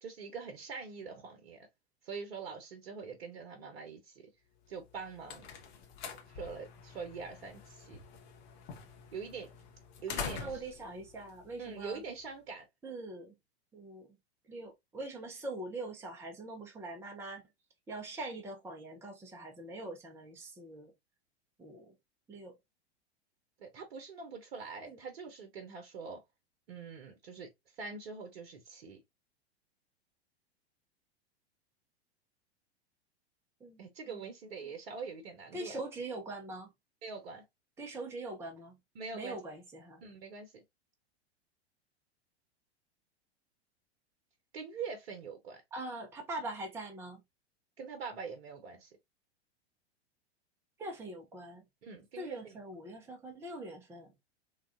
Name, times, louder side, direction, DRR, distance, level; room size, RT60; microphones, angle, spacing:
voice 1, 0.0-1.7 2.0-4.3 4.7-5.5 6.3-8.0 9.1-9.5 10.0-10.6 11.6-12.6 23.6-26.2 26.7-27.5 27.8-29.0 33.8-35.8 37.0-37.4 38.9-39.4 40.0-40.5 44.5-45.6 47.8-49.0 51.8-52.6, right 5 dB, 60° right, 0.9 m, -44 dB
sound 1, 4.8-12.2, left 6 dB, 45° left, 0.8 m, -46 dB
voice 2, 10.1-12.0 12.8-13.3 13.7-14.1 14.5-17.4 17.9-20.9 21.6-21.9 22.3-22.5 24.9-25.0 33.6-33.8 34.1-34.2 35.5-36.7 37.8-38.7 39.1-40.0 45.7-47.2 50.8-51.6 52.2-54.1, right 2 dB, 10° right, 0.6 m, -43 dB
3.2 x 2.3 x 2.4 m
figure-of-eight pair, 95°, 33 cm